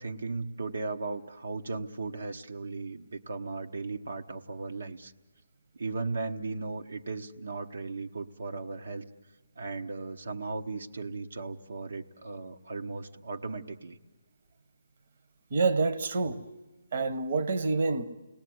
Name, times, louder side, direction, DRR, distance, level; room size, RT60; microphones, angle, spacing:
voice 1, 0.0-5.1 5.7-9.1 9.6-14.0, right 3 dB, 80° right, 0.9 m, -36 dB
voice 2, 15.5-16.4 16.9-18.0, right 4 dB, 55° right, 1.0 m, -27 dB
29.0 x 19.5 x 9.4 m
hypercardioid pair, 160°, 0 cm